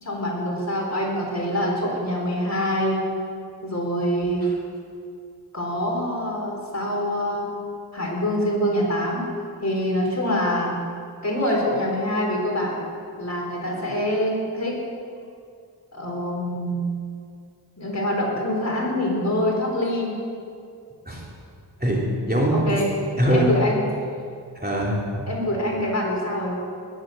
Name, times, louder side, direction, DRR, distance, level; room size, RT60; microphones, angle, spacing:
voice 1, 0.0-3.0 3.6-4.5 5.5-7.6 7.9-9.3 9.6-10.8 11.2-12.8 13.2-14.8 15.9-16.9 17.8-20.2 22.5-22.9 23.3-23.8 25.3-26.5, equal, 40° left, -2 dB, 3.7 m, -25 dB
voice 2, 21.8-22.8 23.2-23.5 24.5-25.3, equal, 25° right, -4 dB, 3.3 m, -22 dB
20.0 x 7.5 x 7.7 m, 2.3 s
wide cardioid pair, 75°, 40 cm